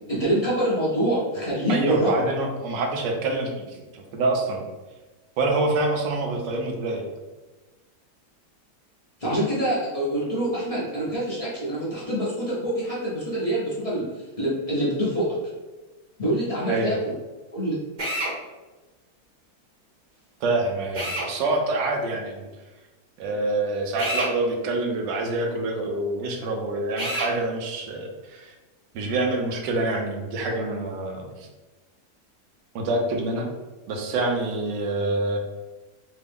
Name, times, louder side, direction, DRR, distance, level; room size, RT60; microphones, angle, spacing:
voice 1, 0.1-2.1 9.2-14.1 14.4-15.3 16.2-17.1 17.5-17.8, right 1 dB, 45° left, -9 dB, 0.4 m, -25 dB
voice 2, 1.7-4.7 5.4-7.1 16.7-17.0 20.4-22.5 23.2-28.5 28.9-31.5 32.7-33.5 33.9-35.4, right 2 dB, 90° right, 2 dB, 1.3 m, -26 dB
Drill, 18.0-18.3 20.9-21.3 24.0-24.3 27.0-27.3, right 1 dB, 45° right, 0.6 m, -27 dB
3.4 x 2.2 x 3.4 m, 1.2 s
omnidirectional pair, 1.9 m